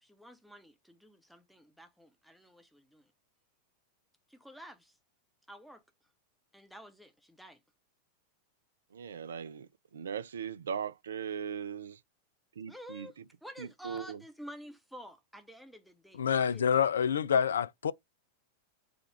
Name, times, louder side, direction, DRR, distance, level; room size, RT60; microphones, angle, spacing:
voice 1, 0.0-3.1 4.3-5.0 5.5-5.8 6.5-7.6 12.7-16.6, equal, ahead, 0.8 m, -50 dB
voice 2, 8.9-12.0 12.6-13.2 13.6-14.2, right 7 dB, 65° right, 0.4 m, -39 dB
voice 3, 16.1-17.9, left 7 dB, 65° left, 0.3 m, -27 dB
4.9 x 2.3 x 4.5 m
figure-of-eight pair, 90°, 0 cm